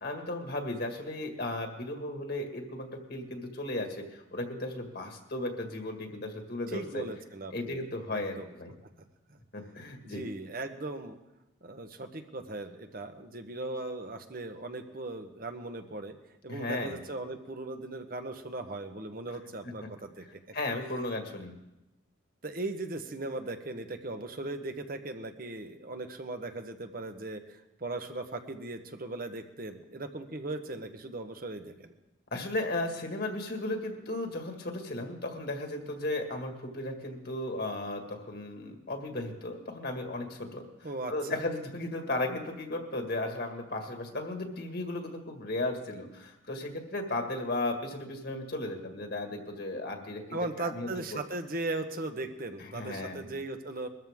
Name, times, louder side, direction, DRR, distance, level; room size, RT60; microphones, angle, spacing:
voice 1, 0.0-7.0 7.5-8.7 9.5-10.2 16.5-17.0 19.8-19.9 20.2-20.3 20.5-21.5 32.3-51.2 52.6-53.3, left 2 dB, 55° left, 3 dB, 1.9 m, -35 dB
voice 2, 6.7-7.8 8.1-8.5 10.0-11.2 11.6-16.1 16.4-20.2 22.4-31.9 40.8-41.4 50.3-53.9, right 2 dB, 45° right, 7 dB, 1.1 m, -38 dB
22.0 x 13.5 x 3.7 m, 0.96 s
head